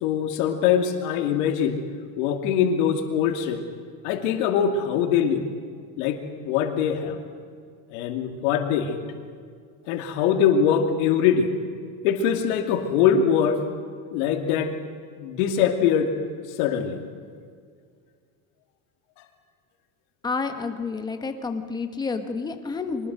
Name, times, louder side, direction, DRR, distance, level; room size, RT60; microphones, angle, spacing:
voice 1, 0.0-1.8 2.2-3.6 4.0-5.5 6.0-6.2 6.4-7.2 7.9-9.0 9.9-11.5 12.0-13.6 14.1-14.7 15.2-16.1 16.6-17.0, left 8 dB, 80° left, 4 dB, 2.7 m, -22 dB
voice 2, 20.2-23.1, left 4 dB, 10° left, 6 dB, 1.1 m, -29 dB
24.0 x 20.5 x 6.4 m, 2.1 s
cardioid pair, 175°, 43 cm